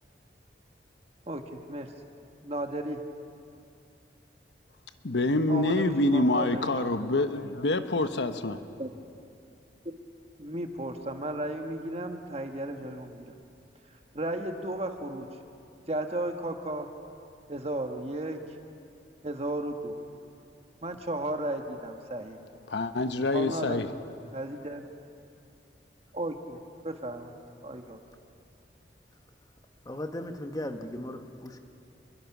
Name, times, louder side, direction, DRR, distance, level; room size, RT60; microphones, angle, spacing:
voice 1, 1.3-1.9 2.4-3.0 5.5-7.1 8.8-8.9 10.4-13.3 14.1-15.3 15.9-16.9 17.5-18.4 19.2-19.9 20.8-22.4 23.3-23.9 24.3-24.8 26.1-26.6 26.8-27.4 27.6-28.0, right 1 dB, 35° right, 1.5 m, -34 dB
voice 2, 5.0-8.6 22.7-23.9, left 2 dB, 85° left, 1.1 m, -26 dB
voice 3, 29.8-31.6, left 1 dB, 20° left, 1.3 m, -37 dB
28.0 x 22.5 x 6.1 m
head